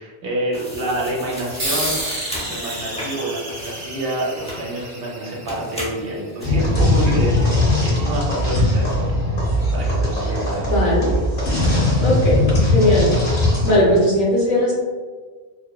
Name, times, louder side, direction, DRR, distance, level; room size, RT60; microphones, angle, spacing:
voice 1, 0.0-2.0 2.5-9.1 9.7-10.7, right 1 dB, 70° right, -3 dB, 0.8 m, -27 dB
sound 1, 0.5-4.9 5.5-6.5, equal, 10° left, 0.4 m, -36 dB
sound 2, 1.6-6.6, right 1 dB, 40° right, 0.6 m, -30 dB
sound 3, 6.4-13.8, left 1 dB, 80° left, 1.2 m, -19 dB
voice 2, 10.7-11.1 12.0-13.1 13.6-14.8, left 1 dB, 50° left, -6 dB, 0.7 m, -18 dB
2.7 x 2.0 x 2.2 m, 1.5 s
omnidirectional pair, 1.0 m